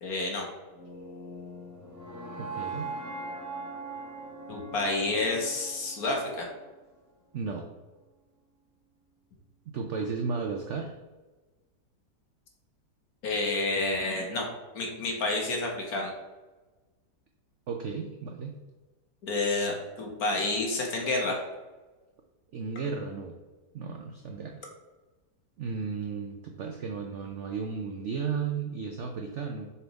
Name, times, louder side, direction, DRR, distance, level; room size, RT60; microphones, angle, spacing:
voice 1, 0.0-0.5 4.5-6.5 13.2-14.5 14.7-16.1 19.2-21.4, left 2 dB, 60° left, 0 dB, 1.6 m, -29 dB
sound 1, 0.7-6.8, right 3 dB, 25° right, 0.4 m, -41 dB
voice 2, 2.4-2.9 7.3-7.7 9.7-11.0 17.7-18.6 22.5-23.4 23.7-24.6 25.6-29.7, right 5 dB, 80° right, 3 dB, 0.6 m, -34 dB
7.0 x 3.5 x 3.9 m, 1.2 s
omnidirectional pair, 1.9 m